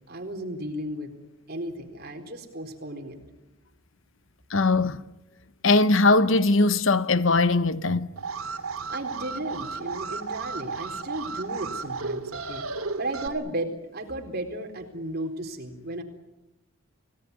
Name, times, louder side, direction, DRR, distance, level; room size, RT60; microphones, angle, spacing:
voice 1, 0.1-1.1 1.5-3.2 8.9-12.6 13.0-16.0, right 1 dB, 45° right, 4.1 m, -34 dB
voice 2, 4.5-5.0 5.6-8.1, left 3 dB, 60° left, 1.0 m, -20 dB
Alarm, 8.2-13.3, right 4 dB, 75° right, 2.9 m, -34 dB
29.5 x 18.0 x 9.6 m
head